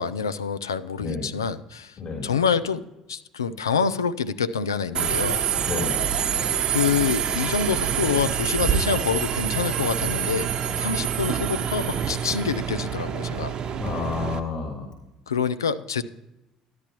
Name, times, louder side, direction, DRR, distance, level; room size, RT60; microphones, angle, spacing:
voice 1, 0.0-2.8 3.1-5.4 6.7-10.5 10.8-13.6 15.3-16.0, left 6 dB, 90° left, 12 dB, 0.3 m, -26 dB
voice 2, 2.0-2.3 5.7-6.0 13.7-14.9, left 4 dB, 40° left, -2 dB, 3.4 m, -30 dB
Subway metro underground, 4.9-14.4, right 8 dB, 45° right, 0.8 m, -26 dB
13.5 x 10.5 x 2.9 m, 0.95 s
hypercardioid pair, 60°, 2 cm